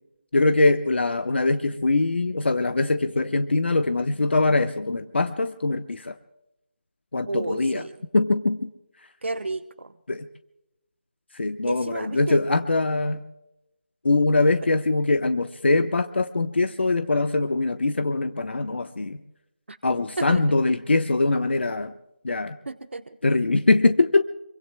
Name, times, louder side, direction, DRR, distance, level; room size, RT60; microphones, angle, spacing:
voice 1, 0.3-6.2 7.1-7.8 8.1-8.7 10.1-10.3 11.3-13.2 14.0-19.2 19.8-21.9 22.2-22.6 23.2-24.2, left 2 dB, 70° left, 9 dB, 1.0 m, -22 dB
voice 2, 7.2-8.0 9.2-9.9 11.7-12.4 19.7-19.8 20.2-20.4 22.7-23.2, right 3 dB, 90° right, 9 dB, 1.0 m, -32 dB
26.0 x 24.5 x 2.2 m, 0.88 s
figure-of-eight pair, 175°, 6 cm